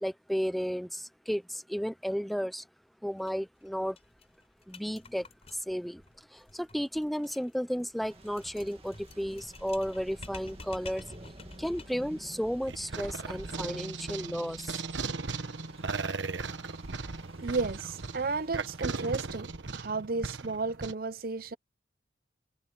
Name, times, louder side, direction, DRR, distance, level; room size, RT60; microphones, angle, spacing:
voice 1, 0.0-2.7 3.0-4.0 4.7-6.0 6.3-11.0 11.6-14.8, equal, ahead, 0.5 m, -33 dB
sound 1, 3.2-3.3 3.6-3.7 4.0-12.1, left 2 dB, 35° left, 5.1 m, -50 dB
Thunder / Rain, 8.1-19.2, right 1 dB, 30° right, 2.1 m, -52 dB
sound 2, 12.7-20.9, right 4 dB, 85° right, 1.2 m, -37 dB
voice 2, 17.4-21.6, right 4 dB, 50° right, 0.7 m, -33 dB
head